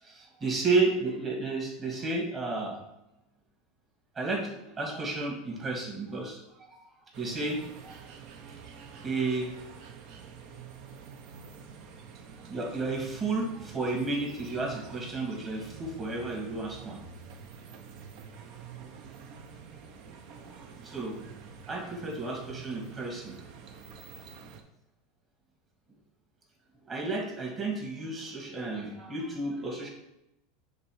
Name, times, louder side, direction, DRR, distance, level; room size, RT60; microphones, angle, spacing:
voice 1, 0.0-2.8 4.2-6.4 6.7-6.8 7.1-8.0 9.0-9.5 12.5-17.0 20.4-20.5 20.8-21.3 21.7-23.3 26.9-29.9, right 3 dB, 30° right, 0 dB, 2.3 m, -32 dB
sound 1, 7.1-24.6, right 6 dB, 60° right, 0.7 m, -47 dB
6.7 x 3.5 x 4.8 m, 0.89 s
hypercardioid pair, 100°, 0 cm